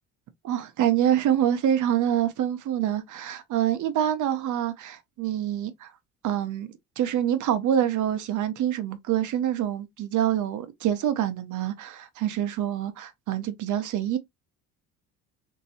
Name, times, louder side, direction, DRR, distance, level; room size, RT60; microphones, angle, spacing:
voice 1, 0.4-5.9 6.2-6.7 7.0-14.2, right 10 dB, 55° right, 0.8 m, -26 dB
3.0 x 2.7 x 2.7 m
supercardioid pair, 70°, 36 cm